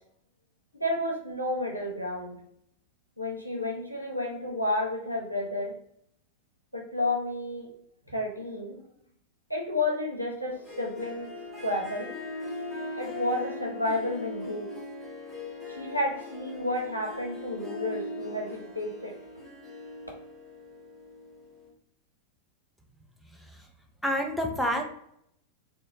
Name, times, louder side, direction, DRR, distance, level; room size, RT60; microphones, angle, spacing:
voice 1, 0.7-2.4 3.2-5.7 6.7-7.7 8.1-8.8 9.5-11.3 11.6-12.1 13.0-14.7 15.7-19.2, left 1 dB, 90° left, -1 dB, 0.7 m, -31 dB
Harp, 10.5-21.7, left 2 dB, 20° left, 0.9 m, -40 dB
voice 2, 23.3-23.7 24.0-24.8, equal, 5° left, 2 dB, 0.5 m, -29 dB
3.5 x 2.0 x 3.1 m, 0.71 s
figure-of-eight pair, 90°, 0 cm